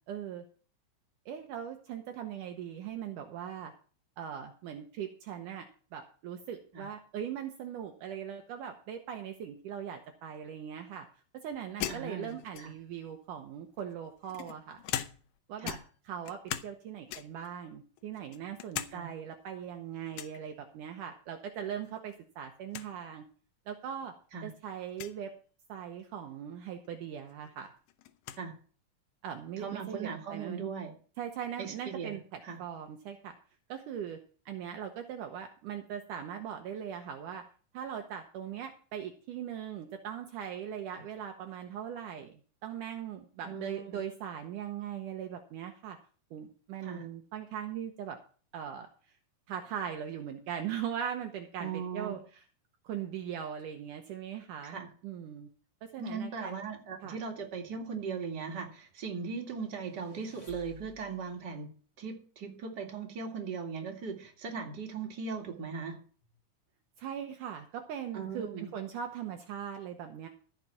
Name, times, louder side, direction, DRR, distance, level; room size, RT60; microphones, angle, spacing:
voice 1, 0.1-0.5 1.3-3.7 4.2-5.7 5.9-11.1 11.4-14.8 15.5-15.8 16.1-23.2 23.7-24.1 24.4-25.3 25.7-27.7 29.2-30.7 31.2-33.3 33.7-34.2 34.5-37.4 37.7-42.3 42.6-46.0 46.3-48.2 48.5-48.9 49.5-52.2 52.8-55.5 55.8-56.6 57.0-57.2 67.0-70.3, right 9 dB, 75° right, 5 dB, 2.3 m, -40 dB
sound 1, 11.8-13.0 13.8-15.4 15.6-16.8 17.1-17.5 18.0-19.0 19.3-19.4 20.1-20.4 21.8-22.2 22.5-22.6 22.7-22.9 23.7-23.8 24.9-25.2 26.9-27.0 27.3-28.4, left 12 dB, 80° left, 2.4 m, -40 dB
voice 2, 11.9-12.7 15.6-15.8 18.9-19.1 24.3-24.5 28.4-28.5 29.6-30.9 31.6-32.2 32.4-32.6 43.4-44.0 46.8-47.1 51.6-52.1 54.6-54.9 56.0-61.7 62.0-66.0 68.1-68.7, right 5 dB, 35° right, 1 dB, 2.4 m, -39 dB
sound 2, 59.6-61.4, left 4 dB, 20° left, 1.1 m, -56 dB
14.5 x 6.0 x 5.7 m, 0.40 s
omnidirectional pair, 4.1 m